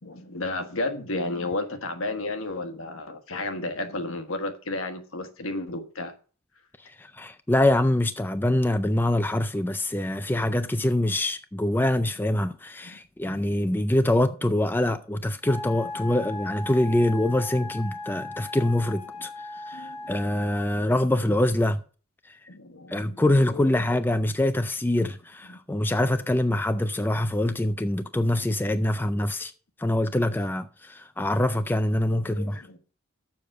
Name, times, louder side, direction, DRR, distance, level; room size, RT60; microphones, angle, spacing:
voice 1, 0.0-6.1 12.8-13.0 15.8-16.2 17.6-17.7 19.2-19.3 19.7-20.1 22.5-23.7 25.5-25.6 28.7-28.9 32.1-32.8, left 2 dB, 65° left, 1.4 m, -33 dB
voice 2, 6.8-19.3 19.7-21.8 22.3-22.4 22.9-29.5 29.8-32.6, left 1 dB, 10° left, 0.4 m, -24 dB
Wind instrument woodwind instrument, 15.4-20.7, left 2 dB, 30° left, 2.4 m, -37 dB
7.1 x 6.5 x 7.6 m
head